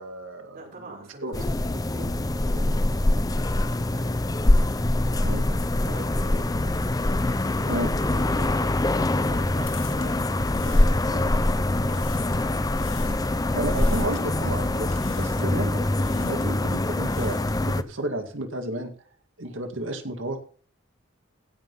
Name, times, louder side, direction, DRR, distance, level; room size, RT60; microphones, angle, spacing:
voice 1, 0.0-1.4 5.2-5.4 7.7-7.9 13.5-17.4 17.6-18.9 19.4-20.4, right 1 dB, 70° right, 5 dB, 2.2 m, -32 dB
voice 2, 0.5-4.2 5.0-6.9 7.6-12.7 13.9-14.1, right 1 dB, 45° right, -2 dB, 5.2 m, -44 dB
sound 1, 1.3-17.8, left 1 dB, 20° left, 0.6 m, -24 dB
sound 2, 9.4-11.4 11.7-12.5 12.8-13.3 13.7-14.2 14.9-15.5 15.9-16.5 16.9-17.7, left 9 dB, 75° left, 2.4 m, -47 dB
16.0 x 5.8 x 5.7 m, 0.42 s
head